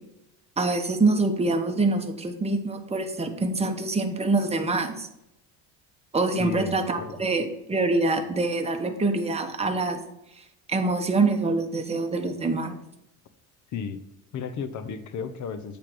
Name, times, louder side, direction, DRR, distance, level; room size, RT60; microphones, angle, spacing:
voice 1, 0.6-5.1 6.1-10.0 10.7-12.8, right 3 dB, 15° right, 4 dB, 1.1 m, -25 dB
voice 2, 6.4-7.2 13.7-14.0 14.3-15.8, left 6 dB, 45° left, 11 dB, 0.9 m, -34 dB
8.4 x 3.5 x 6.2 m, 0.84 s
supercardioid pair, 95°, 41 cm